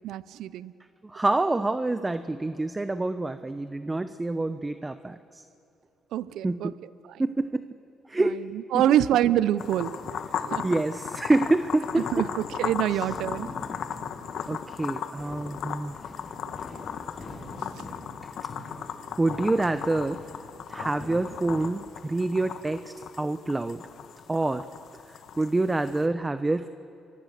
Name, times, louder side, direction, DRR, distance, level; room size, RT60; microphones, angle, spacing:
voice 1, 0.0-0.7 6.1-6.7 7.0-7.1 8.2-8.3 8.5-10.7 12.1-13.5, right 12 dB, 85° right, 16 dB, 0.6 m, -26 dB
voice 2, 1.0-5.4 6.4-6.7 7.2-7.7 8.1-8.4 8.7-8.8 10.6-12.3 12.9-13.0 14.5-15.9 19.2-20.2 20.7-23.8 24.3-24.6 25.1-26.7, right 2 dB, 20° right, 11 dB, 0.9 m, -27 dB
sound 1, 9.6-26.1, left 8 dB, 70° left, 1.3 m, -37 dB
sound 2, 11.6-21.7, left 2 dB, 35° left, 7.0 m, -45 dB
29.0 x 23.5 x 6.7 m, 2.9 s
cardioid pair, 90°, 0 cm